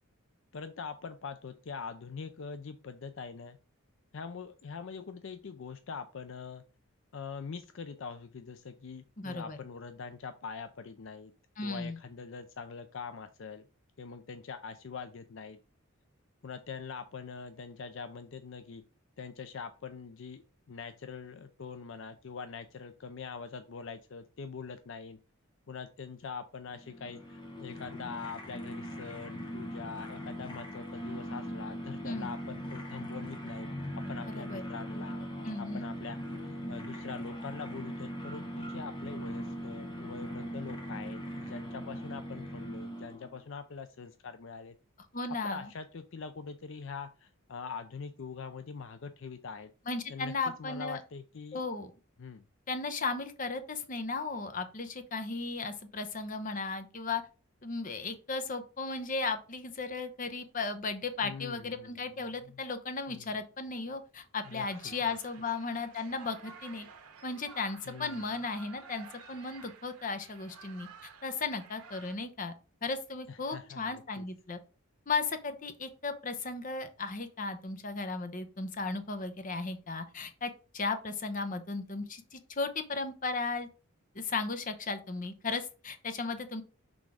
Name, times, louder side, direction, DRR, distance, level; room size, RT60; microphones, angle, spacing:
voice 1, 0.5-3.6 4.1-6.6 7.1-11.3 11.6-13.6 14.0-15.6 16.4-18.8 19.2-25.2 25.7-35.3 35.6-44.7 45.4-49.7 50.1-50.3 50.6-51.6 52.2-52.4 61.2-62.0 62.4-62.6 63.1-63.3 64.4-65.1 67.9-68.2 73.3-74.3, left 5 dB, 60° left, 9 dB, 0.4 m, -43 dB
voice 2, 9.2-9.6 11.6-12.0 32.0-32.3 34.3-34.6 35.4-35.9 45.1-45.7 49.9-51.0 51.5-51.9 52.7-57.2 57.6-66.9 67.2-72.5 72.8-74.6 75.1-83.7 84.1-86.6, left 3 dB, 35° left, 8 dB, 0.7 m, -35 dB
sound 1, 26.7-43.4, equal, 20° left, 1.1 m, -40 dB
sound 2, 64.4-72.2, right 5 dB, 90° right, 1.1 m, -52 dB
6.1 x 3.6 x 4.8 m, 0.35 s
head